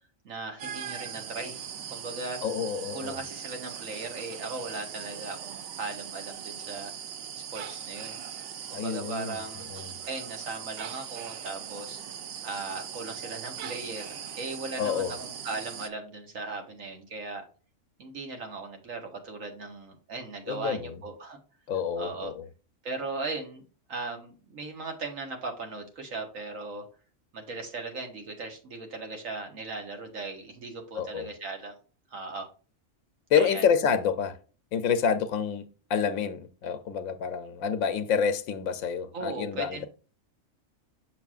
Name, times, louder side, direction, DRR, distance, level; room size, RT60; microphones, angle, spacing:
voice 1, 0.2-2.5 2.9-6.9 7.5-8.2 8.7-9.6 10.1-12.0 12.4-17.4 18.0-21.4 22.0-22.3 22.8-26.8 27.3-31.7 32.1-32.5 33.3-33.6 39.1-39.9, right 3 dB, 80° right, 1.6 m, -38 dB
sound 1, 0.6-15.9, right 8 dB, 60° right, 0.6 m, -40 dB
voice 2, 2.4-3.1 8.7-9.4 9.7-9.9 14.8-15.2 20.5-21.0 21.7-22.5 30.9-31.3 33.3-34.4 34.7-39.8, left 7 dB, 85° left, 1.0 m, -28 dB
6.5 x 6.2 x 2.4 m
omnidirectional pair, 1.4 m